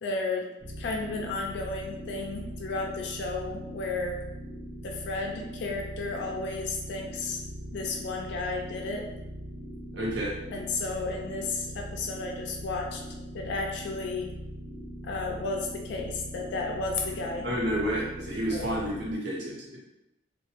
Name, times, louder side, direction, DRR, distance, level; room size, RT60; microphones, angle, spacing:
voice 1, 0.0-0.4 0.8-4.2 4.8-7.4 7.7-9.1 10.5-13.0 13.3-14.3 15.0-17.6 18.5-18.8, left 3 dB, 60° left, 0 dB, 0.3 m, -33 dB
sound 1, 0.6-19.1, equal, 20° right, 0.6 m, -41 dB
voice 2, 9.9-10.3 17.4-19.8, equal, 60° right, -4 dB, 0.7 m, -30 dB
2.2 x 2.0 x 2.9 m, 0.92 s
head